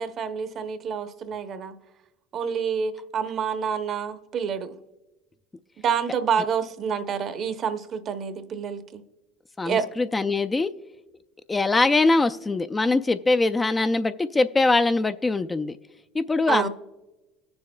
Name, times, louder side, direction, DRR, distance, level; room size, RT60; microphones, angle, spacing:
voice 1, 0.0-1.7 2.3-4.7 5.8-9.0 9.7-9.9 16.5-16.7, right 7 dB, 50° right, 10 dB, 0.8 m, -28 dB
voice 2, 9.6-10.7 11.5-15.8 16.1-16.7, left 3 dB, 20° left, 9 dB, 0.4 m, -22 dB
20.5 x 6.9 x 2.2 m, 1.0 s
supercardioid pair, 85°, 0 cm